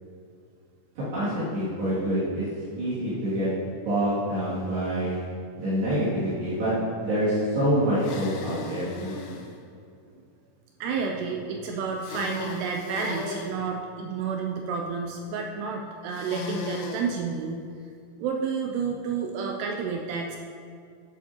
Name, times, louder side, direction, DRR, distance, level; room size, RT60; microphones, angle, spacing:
voice 1, 1.0-2.4 2.7-3.5 3.9-5.3 5.6-6.7 7.0-9.1, right 1 dB, 65° right, -12 dB, 4.3 m, -26 dB
sound 1, 8.0-9.5 12.0-13.5 16.1-17.1, left 5 dB, 85° left, 3.2 m, -36 dB
voice 2, 10.8-17.6 18.2-20.4, right 5 dB, 85° right, 1 dB, 2.4 m, -30 dB
11.0 x 9.8 x 2.9 m, 2.3 s
omnidirectional pair, 5.4 m